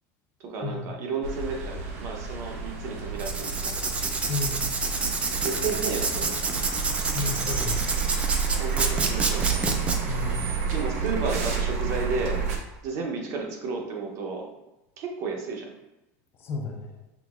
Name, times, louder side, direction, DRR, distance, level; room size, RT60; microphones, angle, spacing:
voice 1, 0.4-3.8 5.3-6.4 8.6-9.8 10.7-12.4 12.8-14.5 15.0-15.8, right 4 dB, 45° right, 2 dB, 0.7 m, -32 dB
sound 1, 1.2-12.6, right 6 dB, 80° right, 0.8 m, -30 dB
Writing, 3.2-10.0, right 3 dB, 15° right, 0.4 m, -28 dB
voice 2, 4.3-4.6 7.1-7.9 10.1-10.4 16.4-16.9, left 5 dB, 30° left, 1 dB, 0.6 m, -32 dB
5.9 x 2.9 x 2.4 m, 0.96 s
cardioid pair, 155°, 8 cm